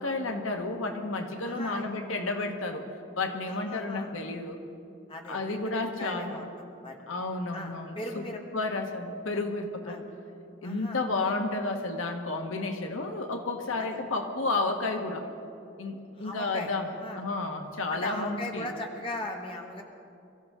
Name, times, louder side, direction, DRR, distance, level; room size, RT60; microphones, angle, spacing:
voice 1, 0.0-2.9 3.2-4.6 5.3-6.4 7.1-8.2 8.5-10.1 10.6-15.3 15.8-16.9 17.2-18.7, left 3 dB, 90° left, 4 dB, 1.3 m, -31 dB
voice 2, 1.4-1.9 3.5-4.1 5.1-6.5 6.8-7.0 7.5-8.7 9.9-10.0 10.6-11.0 13.8-14.0 16.2-16.7 17.0-17.2 17.9-19.8, left 1 dB, 25° left, 1 dB, 1.3 m, -38 dB
23.5 x 14.5 x 3.7 m, 2.7 s
head